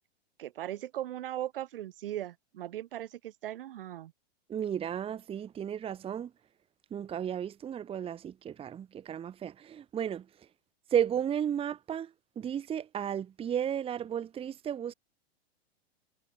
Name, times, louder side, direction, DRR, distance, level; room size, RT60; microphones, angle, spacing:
voice 1, 0.4-4.1, right 12 dB, 60° right, 1.8 m, -38 dB
voice 2, 4.5-6.3 6.9-10.3 10.9-14.9, right 9 dB, 20° right, 1.3 m, -33 dB
figure-of-eight pair, 100°, 32 cm